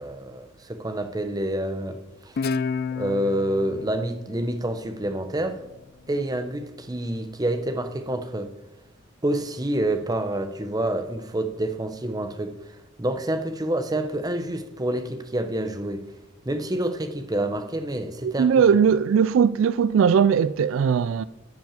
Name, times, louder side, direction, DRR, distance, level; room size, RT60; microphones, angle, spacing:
voice 1, 0.0-2.0 2.2-2.5 3.0-5.6 6.1-8.5 9.2-16.1 16.4-18.5, right 1 dB, 20° right, 0.9 m, -28 dB
Guitar, 2.4-5.6, left 5 dB, 45° left, 0.3 m, -31 dB
voice 2, 18.2-21.2, right 7 dB, 70° right, 0.3 m, -19 dB
12.0 x 6.0 x 7.3 m
head